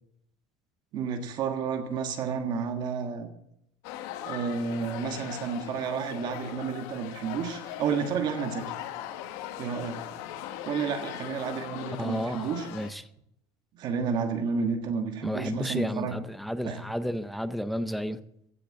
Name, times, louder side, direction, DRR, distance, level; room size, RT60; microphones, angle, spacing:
voice 1, 0.9-3.3 4.2-8.7 9.6-10.0 10.6-12.7 13.7-16.1 16.6-16.8, right 6 dB, 45° right, 6 dB, 1.5 m, -31 dB
sound 1, 3.8-12.9, left 12 dB, 80° left, 1.2 m, -39 dB
voice 2, 12.0-13.1 15.2-18.2, equal, ahead, 13 dB, 0.5 m, -32 dB
15.5 x 6.6 x 7.5 m, 0.76 s
cardioid pair, 170°, 10 cm